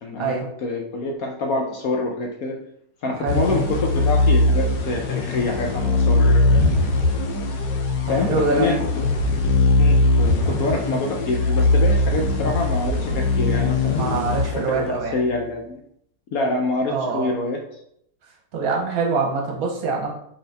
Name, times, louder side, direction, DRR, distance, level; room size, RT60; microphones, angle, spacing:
voice 1, 0.0-0.3 0.6-2.6 3.0-6.6 8.1-9.1 9.8-15.8 16.3-17.6, left 2 dB, 65° left, 1 dB, 0.9 m, -26 dB
sound 1, 3.3-15.1, left 2 dB, 85° left, 1.4 m, -20 dB
voice 2, 8.1-8.8 14.0-15.2 16.9-17.3 18.5-20.1, right 3 dB, 60° right, -1 dB, 1.1 m, -24 dB
4.0 x 3.9 x 3.3 m, 0.72 s
omnidirectional pair, 1.9 m